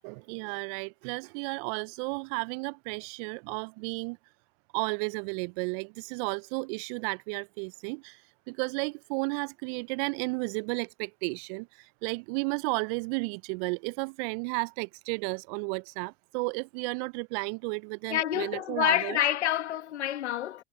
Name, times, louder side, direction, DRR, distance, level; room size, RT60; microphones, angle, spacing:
voice 1, 0.0-4.2 4.7-8.2 8.5-19.2, right 33 dB, 50° right, 0.5 m, -33 dB
voice 2, 18.1-20.6, left 12 dB, 80° left, 1.3 m, -28 dB
hypercardioid pair, 85°, 33 cm